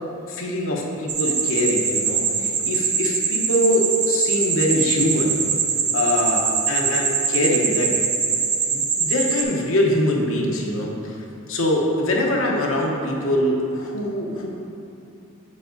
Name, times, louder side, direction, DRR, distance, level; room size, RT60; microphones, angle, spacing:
voice 1, 0.3-5.5 5.9-7.9 8.7-11.2 11.5-14.5, left 1 dB, 65° left, -1 dB, 1.0 m, -23 dB
sound 1, 1.1-9.4, right 6 dB, 50° right, 0.7 m, -23 dB
7.4 x 4.7 x 3.9 m, 2.8 s
head